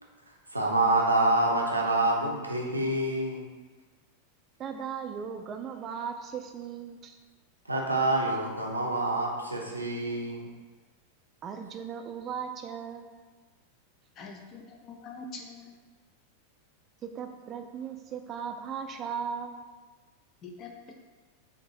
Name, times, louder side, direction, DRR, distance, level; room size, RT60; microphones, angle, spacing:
voice 1, 0.5-3.4 7.7-10.5, right 2 dB, 85° right, -1 dB, 0.6 m, -27 dB
voice 2, 4.6-7.2 11.4-13.1 17.0-19.6, right 7 dB, 30° right, 5 dB, 0.3 m, -37 dB
voice 3, 14.2-15.7 20.4-20.9, left 3 dB, 30° left, 3 dB, 0.5 m, -44 dB
3.7 x 2.6 x 3.8 m, 1.3 s
figure-of-eight pair, 90°, 0 cm